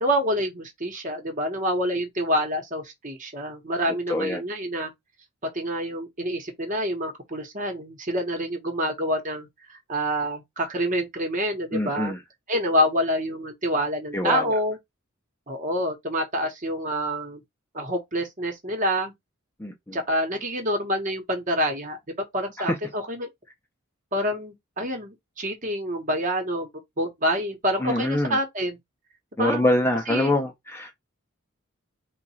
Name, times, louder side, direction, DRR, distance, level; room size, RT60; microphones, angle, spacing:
voice 1, 0.0-4.9 5.5-12.1 12.5-14.8 15.5-17.4 17.7-19.1 19.9-22.0 22.3-23.3 24.1-26.7 27.0-28.8 29.4-29.6 30.1-30.3, equal, 40° right, 1.2 m, -27 dB
voice 2, 4.1-4.4 11.7-12.2 14.1-14.5 19.6-20.0 22.6-22.8 27.8-28.4 29.4-30.9, left 1 dB, 10° left, 0.6 m, -25 dB
2.9 x 2.4 x 4.3 m
head